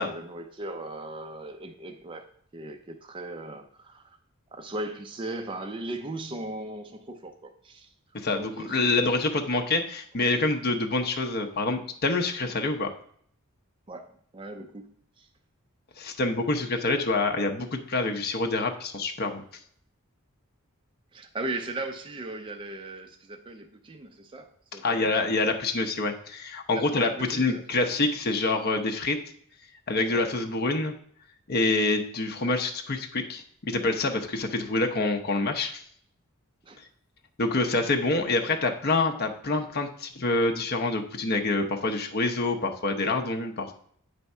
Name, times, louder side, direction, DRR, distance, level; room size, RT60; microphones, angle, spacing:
voice 1, 0.0-2.3 2.5-4.2 4.5-7.9 8.4-8.8 13.9-15.3 21.1-25.1 26.7-27.9 30.1-30.2 36.6-36.8, right 2 dB, 25° right, 4 dB, 0.4 m, -38 dB
voice 2, 8.1-12.9 16.0-19.4 24.8-29.2 29.9-30.9 31.5-35.8 37.4-43.7, left 3 dB, 45° left, 3 dB, 0.7 m, -26 dB
8.2 x 3.5 x 5.4 m, 0.62 s
head